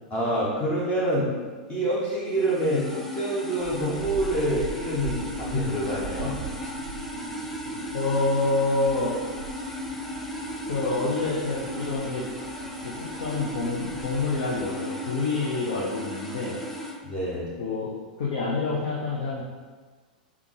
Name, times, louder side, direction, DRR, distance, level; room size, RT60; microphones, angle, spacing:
voice 1, 0.1-1.3 1.7-6.3 17.0-17.5, right 1 dB, 25° left, -8 dB, 0.9 m, -26 dB
sound 1, 2.3-17.0, left 1 dB, 5° left, 0.4 m, -36 dB
sound 2, 3.6-14.7, right 4 dB, 50° right, 0.5 m, -41 dB
voice 2, 7.9-9.2 10.7-12.3 12.8-16.6 17.6-17.9 18.2-19.4, left 3 dB, 60° left, -5 dB, 0.6 m, -27 dB
3.5 x 2.3 x 3.2 m, 1.5 s
figure-of-eight pair, 95°, 5 cm